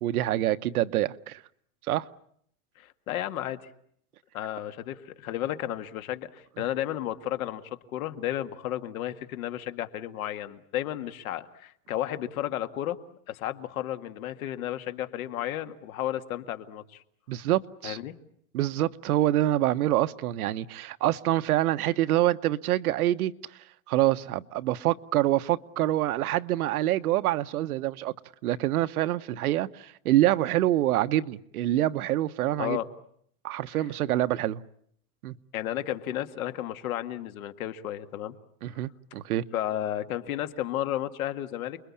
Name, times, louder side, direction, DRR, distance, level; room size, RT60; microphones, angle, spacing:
voice 1, 0.0-1.4 1.9-2.1 17.3-18.0 18.5-23.3 23.9-28.1 28.4-32.8 33.4-34.6 35.2-35.4 38.6-39.4, right 14 dB, 85° right, 1.1 m, -26 dB
voice 2, 2.8-3.6 4.3-7.6 7.9-13.0 13.3-17.0 17.8-18.1 32.5-32.9 35.5-38.4 39.5-41.8, left 12 dB, 70° left, 2.0 m, -33 dB
29.5 x 22.0 x 8.6 m
supercardioid pair, 170°, 43 cm